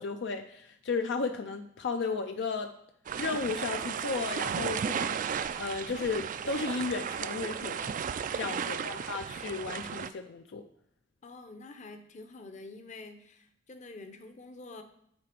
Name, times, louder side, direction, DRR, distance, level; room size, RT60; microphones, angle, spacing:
voice 1, 0.0-2.7 3.2-7.9 8.4-10.7, left 4 dB, 70° left, 6 dB, 0.5 m, -34 dB
sound 1, 3.1-10.1, right 7 dB, 45° right, 0.3 m, -34 dB
voice 2, 8.3-8.9 11.2-14.8, left 3 dB, 40° left, 7 dB, 0.7 m, -47 dB
8.8 x 3.3 x 5.9 m, 0.71 s
head